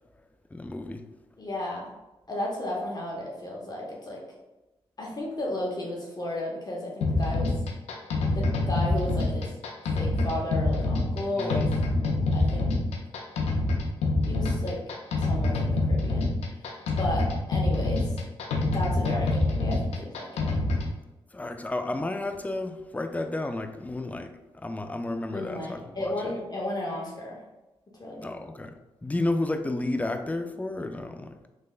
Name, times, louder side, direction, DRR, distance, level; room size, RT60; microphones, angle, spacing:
voice 1, 0.5-1.0 11.4-11.7 21.3-24.3 24.6-26.1 28.2-28.8 29.0-31.3, left 2 dB, 15° left, 6 dB, 0.4 m, -31 dB
voice 2, 1.4-1.9 2.3-4.2 5.0-7.5 8.3-9.5 9.9-11.6 12.3-12.7 14.3-14.8 15.2-16.3 16.7-18.2 18.7-20.5 25.3-27.4 28.0-28.3, left 1 dB, 40° left, -3 dB, 0.9 m, -33 dB
sound 1, 7.0-20.9, left 2 dB, 90° left, 0.5 m, -26 dB
3.3 x 3.2 x 2.4 m, 1.0 s
cardioid pair, 50°, 10 cm